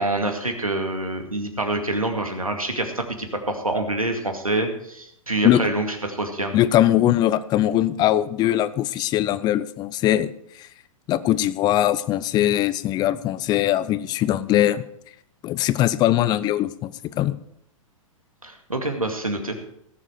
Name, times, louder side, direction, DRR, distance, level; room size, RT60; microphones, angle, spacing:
voice 1, 0.0-6.5 18.4-19.7, right 2 dB, 90° right, 4 dB, 2.2 m, -26 dB
voice 2, 6.5-10.3 10.6-10.7 11.1-14.8 15.4-17.4, left 13 dB, 25° left, 16 dB, 0.6 m, -21 dB
18.0 x 7.5 x 4.7 m, 0.73 s
figure-of-eight pair, 110°, 18 cm